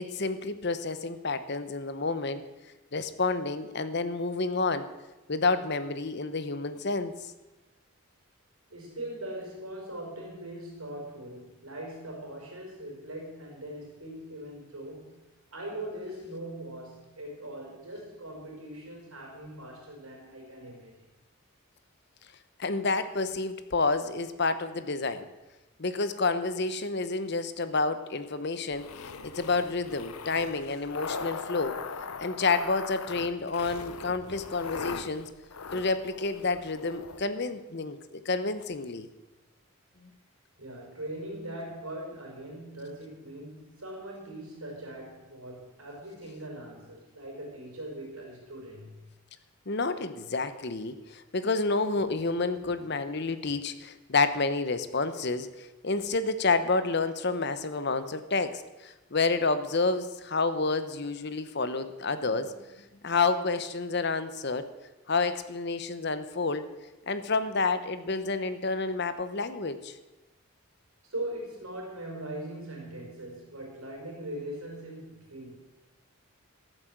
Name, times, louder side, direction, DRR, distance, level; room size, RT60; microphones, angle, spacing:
voice 1, 0.0-2.4 2.9-4.9 5.3-7.3 22.6-25.3 25.8-31.8 32.2-35.3 35.7-39.1 49.7-64.7 65.1-66.7 67.1-70.0, left 3 dB, 50° left, 12 dB, 0.9 m, -29 dB
voice 2, 8.7-15.2 15.5-20.9 40.6-49.0 71.0-75.6, right 1 dB, 85° right, 0 dB, 5.1 m, -41 dB
sound 1, 28.7-37.2, left 5 dB, 85° left, 0.8 m, -40 dB
14.0 x 7.8 x 7.9 m, 1.1 s
head